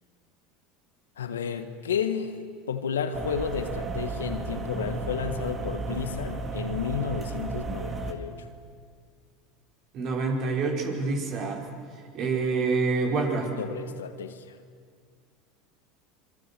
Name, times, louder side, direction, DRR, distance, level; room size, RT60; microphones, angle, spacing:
voice 1, 1.2-2.4 2.7-8.5 13.6-14.6, left 7 dB, 90° left, 9 dB, 1.5 m, -32 dB
sound 1, 3.1-8.1, right 4 dB, 30° right, 2.5 m, -33 dB
voice 2, 9.9-11.7 12.1-13.5, right 4 dB, 50° right, 1 dB, 4.8 m, -27 dB
25.5 x 23.0 x 6.9 m, 2.1 s
hypercardioid pair, 85°, 0 cm